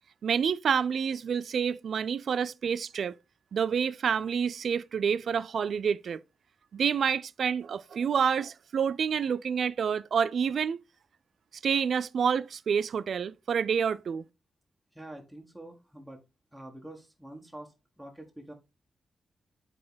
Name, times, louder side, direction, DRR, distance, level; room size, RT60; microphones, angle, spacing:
voice 1, 0.2-3.1 3.5-6.2 6.7-10.8 11.6-14.2, right 7 dB, 65° right, 0.4 m, -28 dB
voice 2, 14.9-16.2 16.5-18.5, right 1 dB, 5° right, 1.5 m, -46 dB
7.7 x 3.7 x 4.0 m
cardioid pair, 110°, 0 cm